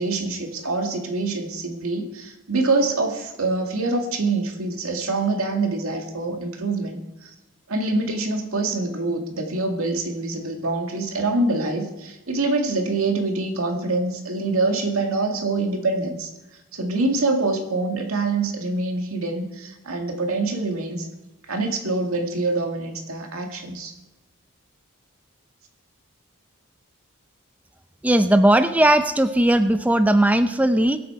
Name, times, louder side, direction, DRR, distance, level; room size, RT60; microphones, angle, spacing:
voice 1, 0.0-7.3 7.7-16.3 16.7-21.1 21.5-23.9, right 3 dB, 90° right, 3 dB, 2.2 m, -25 dB
voice 2, 28.0-31.0, right 1 dB, 5° right, 9 dB, 0.5 m, -18 dB
22.5 x 8.5 x 4.6 m, 1.0 s
head